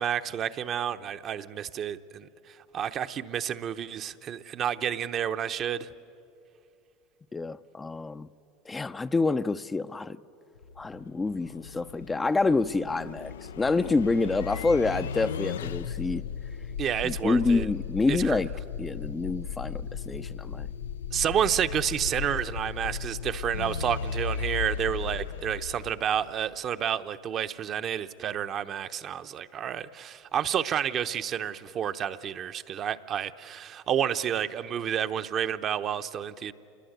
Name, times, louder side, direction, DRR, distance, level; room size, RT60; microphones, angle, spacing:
voice 1, 0.0-5.9 16.8-17.7 18.1-18.4 21.1-36.5, right 9 dB, 40° right, 0.8 m, -30 dB
voice 2, 7.3-8.3 8.7-10.2 10.8-16.2 17.0-18.5 18.8-20.7, left 3 dB, 15° left, 0.5 m, -27 dB
sound 1, 10.6-26.5, left 7 dB, 85° left, 0.5 m, -36 dB
27.0 x 20.5 x 8.1 m
hypercardioid pair, 95°, 0 cm